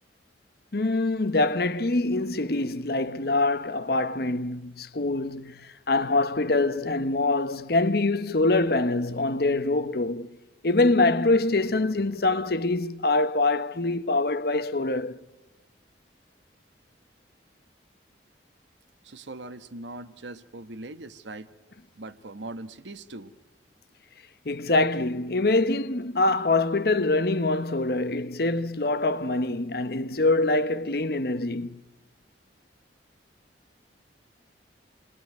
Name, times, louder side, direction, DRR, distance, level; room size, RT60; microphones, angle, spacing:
voice 1, 0.7-10.3 10.6-15.2 24.4-31.8, left 2 dB, 55° left, 1.0 m, -24 dB
voice 2, 19.0-21.5 22.0-23.3, right 2 dB, 85° right, 1.3 m, -40 dB
28.5 x 20.5 x 9.4 m
head